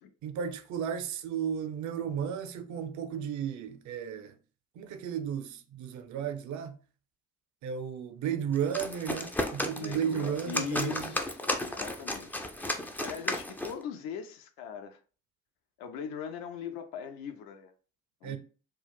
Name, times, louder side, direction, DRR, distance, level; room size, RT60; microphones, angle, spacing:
voice 1, 0.2-4.3 4.8-6.8 7.6-11.1 18.2-18.4, right 8 dB, 50° right, 0.5 m, -34 dB
sound 1, 8.5-13.8, left 1 dB, 5° left, 0.3 m, -34 dB
voice 2, 9.7-12.4 13.0-15.0 15.8-17.7 18.2-18.4, left 7 dB, 65° left, 0.6 m, -40 dB
2.3 x 2.2 x 3.3 m
hypercardioid pair, 45°, 38 cm